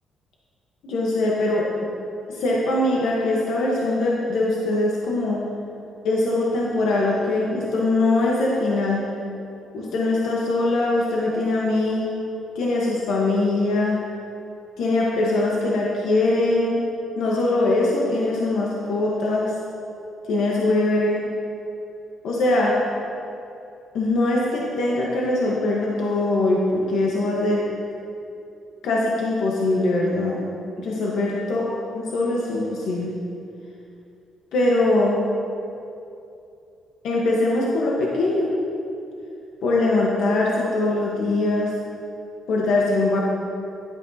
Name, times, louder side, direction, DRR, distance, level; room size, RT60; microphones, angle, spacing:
voice 1, 0.8-1.7 2.3-5.4 6.0-9.0 9.7-12.1 12.5-14.0 14.8-16.8 17.2-19.5 20.3-21.3 22.2-22.8 23.9-27.6 28.8-30.4 30.8-33.1 34.5-35.2 37.0-38.5 39.6-41.7 42.5-43.2, left 2 dB, 75° left, -4 dB, 1.2 m, -22 dB
11.0 x 9.2 x 2.8 m, 2.7 s
cardioid pair, 90°, 0 cm